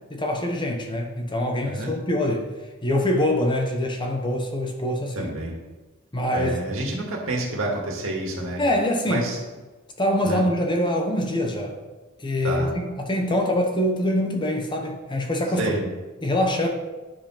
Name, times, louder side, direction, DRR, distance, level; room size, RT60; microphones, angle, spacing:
voice 1, 0.1-2.5 2.8-5.3 6.1-6.6 8.6-9.3 10.0-11.8 12.2-15.7 16.2-16.7, left 1 dB, 20° left, 2 dB, 1.0 m, -24 dB
voice 2, 5.1-5.5 6.3-8.6 9.1-9.4 10.2-10.5 12.4-12.7 15.6-15.8, right 1 dB, 65° right, -1 dB, 2.1 m, -28 dB
10.5 x 4.8 x 5.6 m, 1.2 s
head